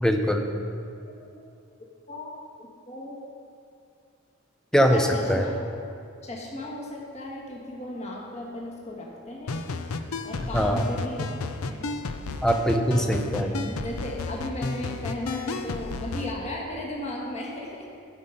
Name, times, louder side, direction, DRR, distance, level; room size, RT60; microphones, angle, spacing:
voice 1, 0.0-0.5 4.7-5.4 10.5-10.8 12.4-13.6, equal, 5° left, 4 dB, 0.6 m, -22 dB
voice 2, 1.0-1.4 2.1-3.2 4.9-5.6 6.2-9.7 10.2-11.9 12.9-17.9, left 1 dB, 30° left, -2 dB, 1.5 m, -36 dB
sound 1, 9.5-16.3, left 3 dB, 85° left, 0.6 m, -33 dB
12.0 x 5.3 x 5.6 m, 2.5 s
head